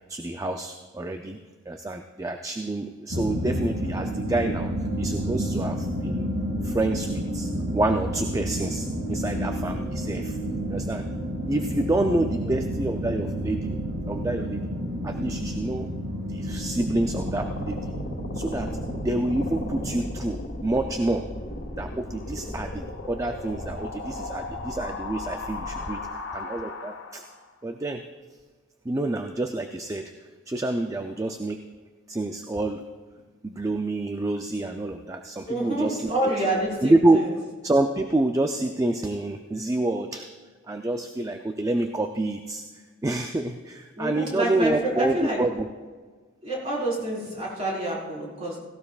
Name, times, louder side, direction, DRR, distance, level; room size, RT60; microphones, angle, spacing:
voice 1, 0.0-1.4 1.7-4.7 5.0-6.3 6.6-10.4 10.7-11.1 11.5-13.8 14.1-14.7 15.0-15.9 16.3-17.9 18.3-18.7 19.0-21.3 21.8-27.2 27.6-28.0 28.8-30.1 30.5-31.6 32.1-32.9 33.4-36.4 36.8-37.2 37.6-40.3 40.7-42.6 43.0-45.7, right 2 dB, 15° right, 6 dB, 0.4 m, -27 dB
sound 1, 3.1-20.0, equal, 80° right, 2.0 m, -30 dB
sound 2, 16.5-27.4, left 2 dB, 90° left, 1.7 m, -36 dB
voice 2, 35.4-37.3 44.0-45.4 46.4-48.6, right 1 dB, 35° right, -5 dB, 4.4 m, -28 dB
17.0 x 16.5 x 2.4 m, 1.4 s
head